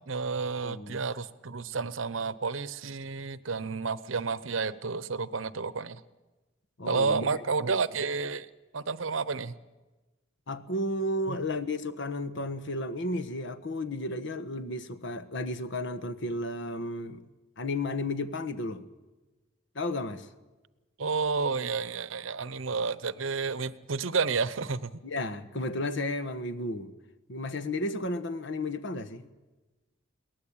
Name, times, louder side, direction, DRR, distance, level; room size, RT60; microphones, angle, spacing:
voice 1, 0.1-6.0 6.9-8.5 8.7-9.5 11.3-11.4 21.0-25.0, right 4 dB, 80° right, 0.9 m, -31 dB
voice 2, 0.6-1.0 6.8-7.3 10.5-17.2 17.6-18.8 19.7-20.3 25.0-26.9 27.3-29.3, left 1 dB, 65° left, 1.3 m, -33 dB
22.0 x 18.0 x 8.7 m
head